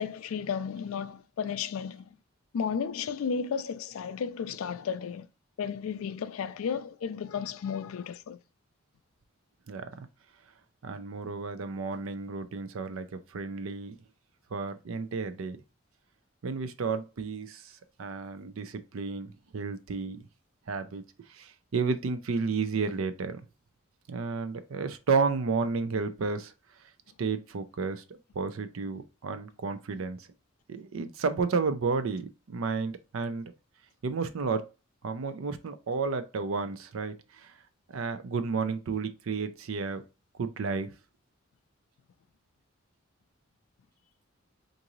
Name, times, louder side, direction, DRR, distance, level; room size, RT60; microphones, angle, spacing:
voice 1, 0.0-2.2 2.5-5.3 5.6-8.4, left 6 dB, 85° left, 0.4 m, -33 dB
voice 2, 9.7-10.1 10.8-14.0 14.5-15.6 16.4-20.3 20.7-21.0 21.3-23.4 24.1-26.5 26.8-26.9 27.2-30.3 30.7-33.5 34.0-34.6 35.0-37.6 37.9-40.0 40.4-40.9, right 4 dB, 80° right, 0.5 m, -32 dB
3.7 x 2.6 x 3.0 m
head